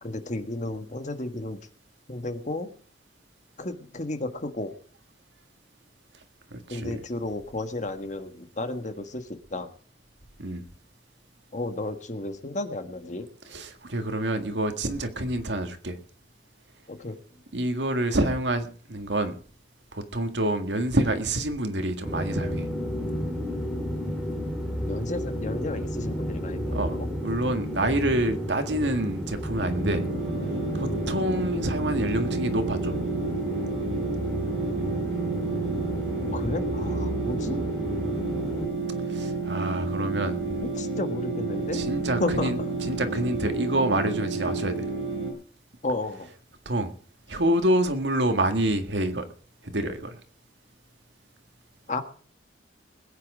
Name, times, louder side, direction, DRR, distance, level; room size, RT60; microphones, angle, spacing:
voice 1, 0.0-1.6 2.1-2.7 3.6-4.7 6.7-9.7 11.5-13.3 16.9-17.2 24.9-27.1 36.3-37.6 40.6-41.8 42.2-42.7 45.8-46.3 51.9-52.0, left 2 dB, 45° left, 8 dB, 1.5 m, -33 dB
voice 2, 6.5-7.0 10.4-10.6 13.5-16.0 17.5-19.3 19.9-22.7 26.7-26.9 27.2-30.0 30.7-33.0 39.1-40.5 41.7-44.9 46.7-46.9 47.3-49.3 49.6-50.2, right 1 dB, 85° right, 7 dB, 1.8 m, -27 dB
sound 1, 22.0-38.7, equal, ahead, 4.0 m, -32 dB
sound 2, 29.5-45.3, right 3 dB, 65° right, 6.3 m, -31 dB
21.0 x 8.9 x 4.9 m, 0.44 s
head